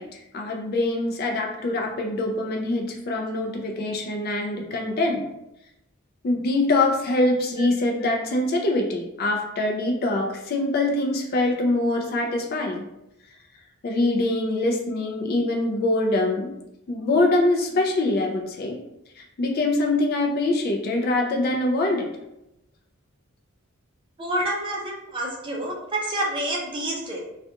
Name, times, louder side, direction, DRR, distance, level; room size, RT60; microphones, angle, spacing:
voice 1, 0.0-5.3 6.2-12.9 13.8-16.5 16.9-18.8 19.2-22.1, left 2 dB, 45° left, 2 dB, 0.3 m, -24 dB
voice 2, 24.2-27.2, right 1 dB, 20° right, -2 dB, 0.4 m, -28 dB
2.3 x 2.2 x 2.7 m, 0.88 s
head